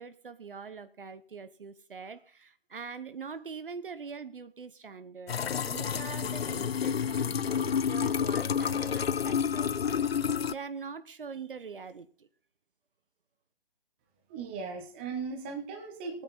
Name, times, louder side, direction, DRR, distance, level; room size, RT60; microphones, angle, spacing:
voice 1, 0.0-12.3, right 5 dB, 55° right, 13 dB, 1.0 m, -43 dB
sound 1, 5.3-10.5, left 7 dB, 70° left, 0.6 m, -29 dB
voice 2, 14.3-16.2, right 5 dB, 10° right, 3 dB, 1.2 m, -37 dB
18.0 x 9.2 x 4.2 m, 0.42 s
hypercardioid pair, 165°, 32 cm